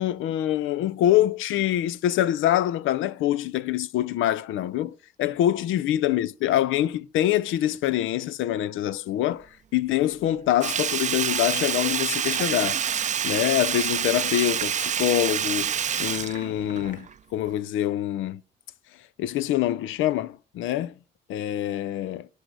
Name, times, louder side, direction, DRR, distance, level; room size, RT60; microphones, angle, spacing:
voice 1, 0.0-9.5 9.7-12.8 13.2-15.7 16.0-18.4 19.2-20.9 21.3-22.3, left 13 dB, 85° left, 0.5 m, -25 dB
Sink (filling or washing), 10.6-17.1 17.5-17.6, right 8 dB, 35° right, 0.4 m, -27 dB
sound 1, 11.9-17.0, left 3 dB, 40° left, 1.5 m, -50 dB
10.5 x 4.8 x 6.4 m
cardioid pair, 90°, 20 cm